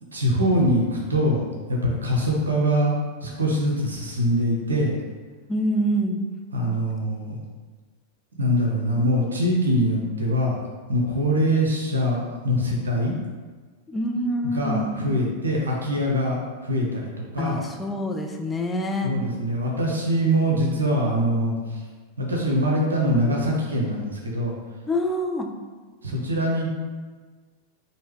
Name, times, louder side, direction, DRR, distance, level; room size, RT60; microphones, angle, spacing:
voice 1, 0.1-1.4 1.7-2.9 3.2-4.9 6.5-7.4 8.4-10.6 10.9-13.1 14.5-17.6 19.0-21.8 22.2-24.5 26.0-26.7, equal, 75° right, -2 dB, 0.7 m, -23 dB
voice 2, 5.5-6.2 13.9-15.2 17.4-19.1 24.9-25.5, equal, 10° left, 3 dB, 0.4 m, -26 dB
4.6 x 2.7 x 3.0 m, 1.4 s
figure-of-eight pair, 90°, 0 cm